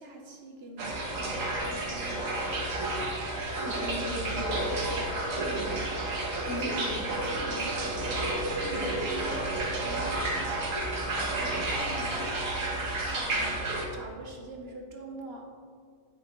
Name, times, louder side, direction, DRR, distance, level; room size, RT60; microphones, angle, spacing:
voice 1, 0.0-2.9 5.3-5.9 6.3-10.3 11.3-12.3 13.0-13.6 13.9-15.4, right 2 dB, 55° right, 1 dB, 1.0 m, -44 dB
sound 1, 0.8-13.8, right 2 dB, 85° right, 1.5 m, -31 dB
voice 2, 3.6-5.0 6.5-7.0 7.3-7.4 8.7-8.9, left 2 dB, 60° left, 2 dB, 1.1 m, -38 dB
9.5 x 5.8 x 3.0 m, 2.1 s
omnidirectional pair, 1.3 m